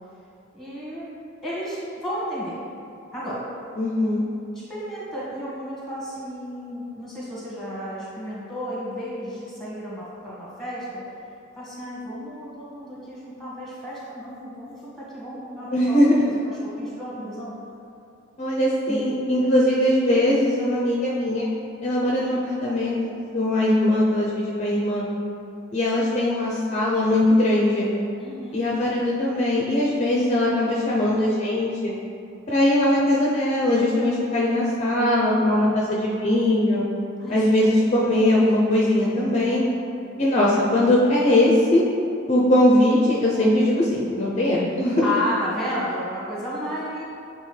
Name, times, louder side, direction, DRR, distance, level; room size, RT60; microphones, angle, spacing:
voice 1, 0.5-1.1 1.4-2.6 3.1-3.4 4.7-11.0 11.5-15.9 16.3-17.5 18.9-19.0 28.2-28.6 37.2-38.4 45.0-47.0, equal, ahead, -8 dB, 1.4 m, -32 dB
voice 2, 3.8-4.2 15.7-16.2 18.4-21.5 21.8-23.0 23.3-25.1 25.7-27.9 28.5-31.9 32.5-36.8 37.3-39.6 40.2-41.8 42.3-45.1, left 1 dB, 35° left, -5 dB, 0.5 m, -20 dB
7.8 x 3.9 x 3.2 m, 2.6 s
head